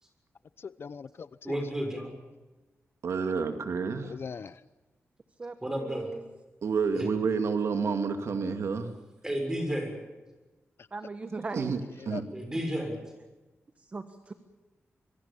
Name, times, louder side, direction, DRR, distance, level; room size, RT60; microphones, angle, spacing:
voice 1, 0.6-1.3 1.9-2.0 4.0-4.6 10.8-10.9 12.0-12.2, left 6 dB, 55° left, 16 dB, 0.7 m, -41 dB
voice 2, 1.4-2.1 5.6-6.1 6.9-7.1 9.2-9.9 12.3-13.0, equal, 10° right, 4 dB, 6.6 m, -32 dB
voice 3, 3.0-4.1 6.6-8.9 11.5-11.8 12.1-12.2, right 5 dB, 70° right, 7 dB, 2.3 m, -29 dB
voice 4, 5.4-6.2 8.3-8.8 10.9-11.7 13.8-14.3, right 3 dB, 30° right, 9 dB, 1.3 m, -39 dB
26.0 x 23.0 x 7.2 m, 1.1 s
wide cardioid pair, 170°, 5 cm